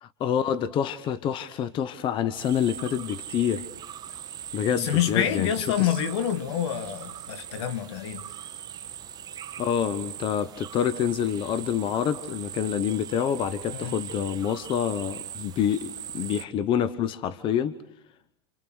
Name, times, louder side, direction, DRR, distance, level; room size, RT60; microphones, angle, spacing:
voice 1, 0.0-3.7 4.5-6.0 9.6-17.7, left 9 dB, 35° left, 1.0 m, -27 dB
sound 1, 2.3-16.4, right 9 dB, 25° right, 1.2 m, -40 dB
voice 2, 4.7-8.2 13.7-14.0, left 10 dB, 65° left, 2.2 m, -27 dB
29.0 x 28.5 x 6.3 m
supercardioid pair, 130°, 15 cm